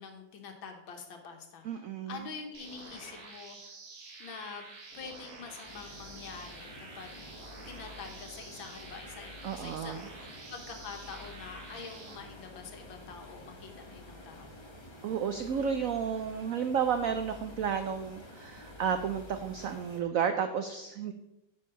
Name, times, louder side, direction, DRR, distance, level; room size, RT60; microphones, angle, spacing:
voice 1, 0.0-3.8 4.2-4.7 4.9-7.2 7.7-14.6, left 5 dB, 90° left, 4 dB, 2.0 m, -46 dB
voice 2, 1.6-2.3 9.4-10.0 15.0-21.1, right 7 dB, 80° right, 8 dB, 0.7 m, -32 dB
sound 1, 2.5-12.2, right 3 dB, 50° right, 1.7 m, -49 dB
sound 2, 5.6-20.0, left 2 dB, 20° left, 0.8 m, -49 dB
9.6 x 4.7 x 5.5 m, 0.88 s
omnidirectional pair, 2.1 m